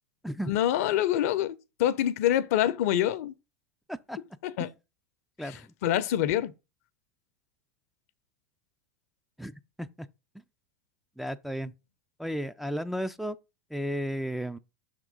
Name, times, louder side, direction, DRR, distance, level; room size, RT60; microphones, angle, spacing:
voice 1, 0.5-3.3 4.4-4.7 5.4-6.5, left 11 dB, 65° left, 0.6 m, -26 dB
voice 2, 11.2-11.7 12.2-13.4 13.7-14.6, equal, ahead, 0.4 m, -33 dB
5.9 x 3.7 x 5.1 m
hypercardioid pair, 95°, 9 cm